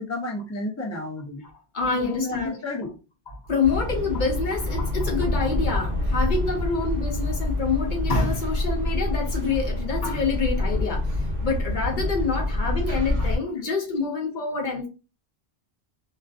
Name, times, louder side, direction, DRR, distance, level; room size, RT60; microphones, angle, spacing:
voice 1, 0.0-1.4 1.8-2.9 13.6-13.7, left 2 dB, 25° left, 0.4 m, -31 dB
voice 2, 1.4-2.6 3.3-11.1 11.4-14.9, left 4 dB, 55° left, 0.7 m, -27 dB
sound 1, 3.6-13.4, left 1 dB, 45° right, 0.8 m, -26 dB
2.4 x 2.3 x 2.3 m
omnidirectional pair, 1.1 m